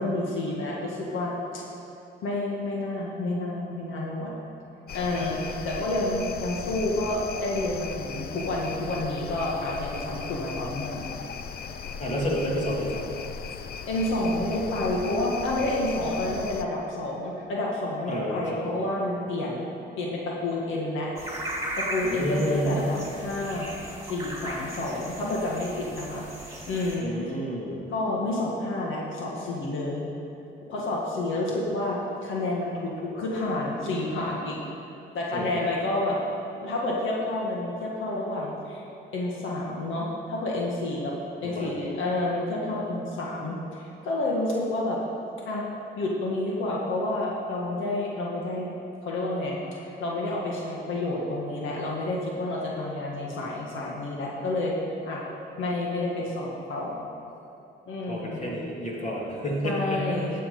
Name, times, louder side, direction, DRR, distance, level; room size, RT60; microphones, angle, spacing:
voice 1, 0.0-1.6 2.2-4.3 4.9-11.1 13.9-19.7 20.0-21.1 21.7-23.7 24.0-27.1 27.9-30.1 30.7-34.6 35.1-36.2 36.5-38.9 39.1-41.1 41.4-45.0 45.5-45.7 46.0-48.7 49.0-54.8 55.1-55.2 55.6-57.1 57.9-58.5 59.6-60.4, left 2 dB, 80° left, -3 dB, 1.9 m, -29 dB
sound 1, 4.9-16.6, left 6 dB, 50° left, 0.6 m, -38 dB
voice 2, 12.0-13.2 18.1-18.7 22.0-23.1 27.0-27.9 31.5-31.6 35.3-35.6 41.4-41.7 58.1-60.4, equal, 35° left, -3 dB, 2.7 m, -30 dB
sound 2, 21.2-27.0, right 1 dB, 15° right, 2.8 m, -37 dB
12.0 x 7.6 x 5.5 m, 3.0 s
cardioid pair, 90°, 20 cm